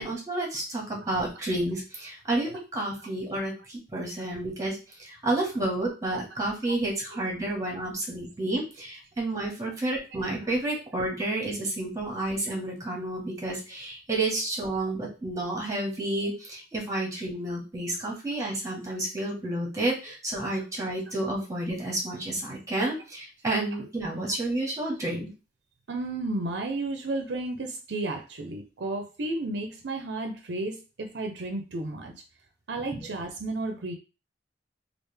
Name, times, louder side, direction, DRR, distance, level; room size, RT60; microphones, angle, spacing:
voice 1, 0.0-25.3, right 2 dB, 20° right, -1 dB, 1.3 m, -30 dB
voice 2, 25.9-32.1 32.7-33.9, right 2 dB, 65° right, 4 dB, 0.6 m, -32 dB
3.2 x 2.5 x 3.3 m, 0.31 s
head